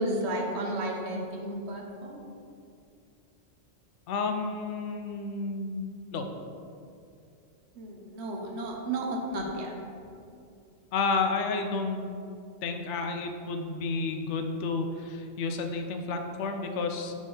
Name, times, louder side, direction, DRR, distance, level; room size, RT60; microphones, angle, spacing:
voice 1, 0.0-2.2 7.8-9.7, right 1 dB, 70° right, 1 dB, 1.1 m, -32 dB
voice 2, 4.1-6.3 10.9-12.1 12.6-17.1, left 4 dB, 85° left, 5 dB, 0.9 m, -31 dB
5.1 x 3.6 x 5.3 m, 2.5 s
omnidirectional pair, 1.2 m